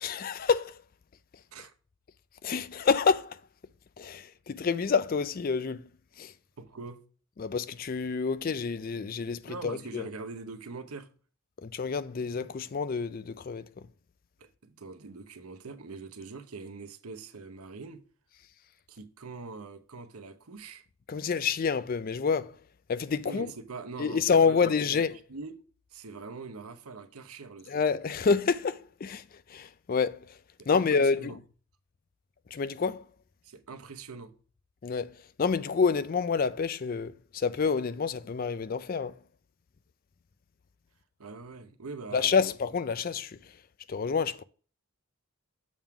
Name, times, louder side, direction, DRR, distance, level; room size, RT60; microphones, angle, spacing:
voice 1, 0.0-0.8 2.4-3.4 4.0-5.9 6.2-6.3 7.4-10.1 11.6-13.9 21.1-22.6 22.9-23.5 24.0-25.2 27.7-30.4 30.7-31.4 32.5-33.1 34.8-39.2 42.1-43.6 43.9-44.4, left 5 dB, 40° left, 0.4 m, -28 dB
voice 2, 6.6-7.0 9.5-11.1 14.4-18.0 18.9-20.8 23.2-25.0 25.3-25.5 25.9-27.7 30.6-31.4 33.4-34.3 41.2-42.5, right 4 dB, 85° right, 0.9 m, -43 dB
7.2 x 3.7 x 5.8 m
head